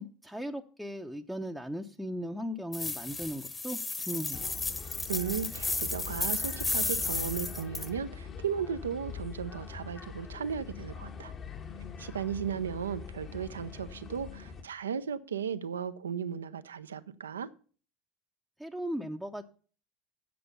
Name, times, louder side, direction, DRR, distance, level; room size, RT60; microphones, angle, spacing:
voice 1, 0.0-4.5 18.6-19.4, equal, ahead, 0.7 m, -37 dB
sound 1, 2.7-7.9, left 3 dB, 25° left, 1.3 m, -33 dB
sound 2, 4.3-14.6, left 6 dB, 40° left, 1.4 m, -43 dB
voice 2, 5.1-11.3 12.0-17.5, right 7 dB, 85° right, 0.5 m, -35 dB
7.7 x 7.7 x 6.8 m
hypercardioid pair, 70°, 0 cm